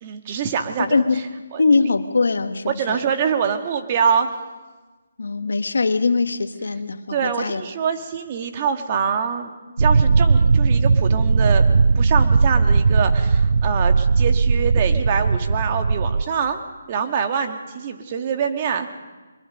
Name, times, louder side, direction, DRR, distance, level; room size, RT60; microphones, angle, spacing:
voice 1, 0.0-1.0 1.5-1.6 2.7-4.3 7.1-9.5 9.8-11.6 12.0-16.6 16.9-18.9, right 7 dB, 35° right, 5 dB, 1.9 m, -24 dB
voice 2, 0.8-1.2 1.6-3.0 5.2-7.6, left 4 dB, 75° left, 9 dB, 1.5 m, -21 dB
sound 1, 9.8-16.2, right 4 dB, 65° right, 0.6 m, -17 dB
24.0 x 22.5 x 5.3 m, 1.3 s
figure-of-eight pair, 155°, 0 cm